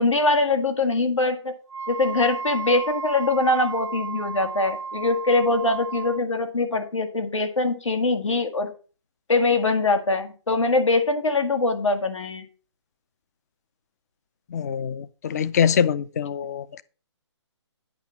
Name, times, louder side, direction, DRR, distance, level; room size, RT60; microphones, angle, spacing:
voice 1, 0.0-1.5 1.9-8.7 9.3-12.4, left 2 dB, 85° left, 1.8 m, -23 dB
Wind instrument woodwind instrument, 1.7-6.2, right 5 dB, 85° right, 0.7 m, -33 dB
voice 2, 14.5-16.8, left 8 dB, 35° left, 0.4 m, -24 dB
8.9 x 5.3 x 5.7 m
hypercardioid pair, 150°, 15 cm